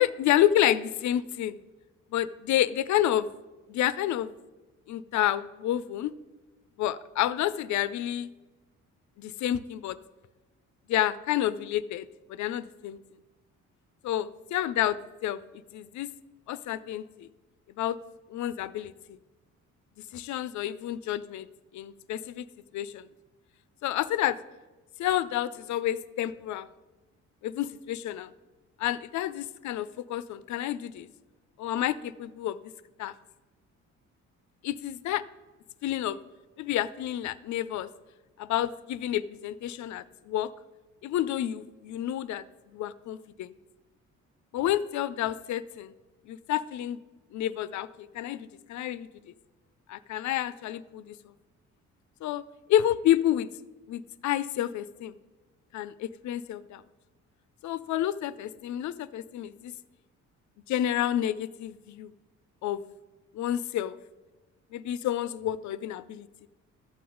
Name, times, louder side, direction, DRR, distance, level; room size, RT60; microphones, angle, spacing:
voice 1, 0.0-1.6 2.1-3.3 3.7-4.3 4.9-6.1 6.8-8.3 9.2-10.0 10.9-13.0 14.0-15.4 15.7-16.1 16.5-17.3 17.8-18.0 18.3-19.2 20.1-21.5 21.7-22.4 22.7-23.1 23.8-24.4 25.0-26.7 27.4-28.3 28.8-31.1 31.6-32.6 33.0-33.1 34.6-35.2 35.8-36.2 36.6-37.9 38.4-40.5 41.0-42.4 42.7-43.5 44.5-45.9 46.3-47.0 47.3-49.1 49.9-51.2 52.2-52.4 52.7-53.5 53.9-55.1 55.7-56.8 57.6-59.7 60.7-62.1 62.6-62.8 63.3-64.0 64.7-66.5, left 12 dB, 70° left, 16 dB, 0.5 m, -29 dB
12.5 x 7.7 x 3.8 m, 1.2 s
cardioid pair, 90°, 30 cm